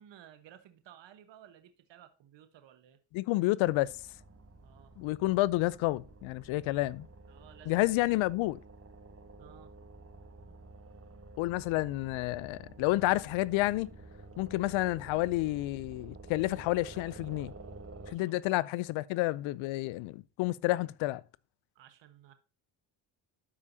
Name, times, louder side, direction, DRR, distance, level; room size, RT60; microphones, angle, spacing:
voice 1, 0.0-3.0 4.6-5.0 7.3-7.9 9.4-9.8 18.0-18.7 21.7-22.3, right 10 dB, 70° right, 1.2 m, -56 dB
voice 2, 3.1-3.9 5.0-7.1 7.7-8.6 11.4-13.9 14.4-17.5 18.1-21.2, left 18 dB, 85° left, 0.6 m, -30 dB
sound 1, 3.6-18.1, right 2 dB, 30° right, 1.8 m, -51 dB
12.5 x 5.0 x 2.7 m
supercardioid pair, 70°, 46 cm